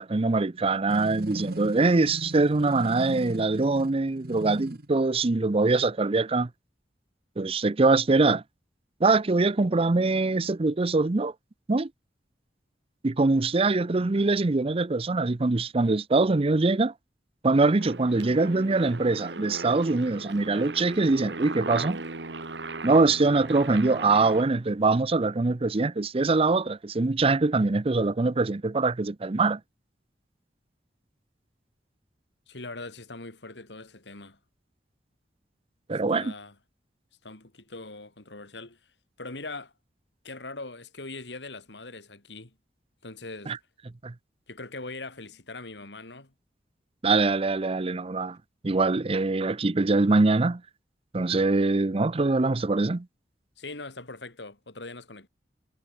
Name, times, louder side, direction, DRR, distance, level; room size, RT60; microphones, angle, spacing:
voice 1, 0.0-6.5 7.4-8.4 9.0-11.3 11.7-11.9 13.0-16.9 17.4-22.0 22.8-29.6 35.9-36.3 43.5-43.6 44.0-44.1 47.0-48.4 48.6-50.6 51.1-53.1, right 3 dB, 35° right, 0.6 m, -23 dB
sound 1, 0.9-4.9, right 1 dB, 60° right, 2.8 m, -38 dB
Aircraft, 17.8-24.4, right 3 dB, 85° right, 2.2 m, -37 dB
voice 2, 32.5-34.4 36.1-36.6 37.2-38.8 39.2-39.7 40.2-42.5 43.0-43.5 44.5-46.3 53.6-55.3, left 3 dB, 85° left, 3.4 m, -41 dB
head